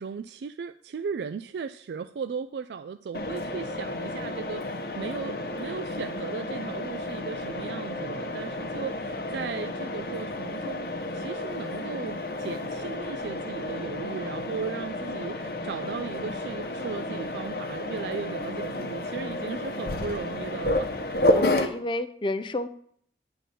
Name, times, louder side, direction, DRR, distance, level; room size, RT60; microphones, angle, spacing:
voice 1, 0.0-21.3, right 5 dB, 75° right, 10 dB, 0.3 m, -36 dB
Mechanisms, 3.1-21.7, left 1 dB, 55° left, 0.8 m, -31 dB
voice 2, 21.3-22.7, left 1 dB, 25° left, 11 dB, 0.4 m, -29 dB
10.0 x 3.8 x 6.8 m, 0.64 s
head